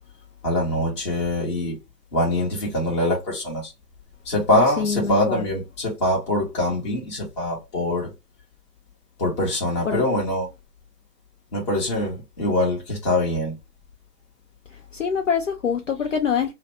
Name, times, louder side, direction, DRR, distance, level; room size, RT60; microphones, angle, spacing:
voice 1, 0.4-1.8 2.1-3.7 4.2-8.1 9.2-10.5 11.5-13.5, left 1 dB, 20° left, 1.0 m, -23 dB
voice 2, 4.8-5.5 9.9-10.0 14.9-16.5, left 6 dB, 55° left, 0.5 m, -25 dB
2.8 x 2.1 x 2.9 m
figure-of-eight pair, 130°, 48 cm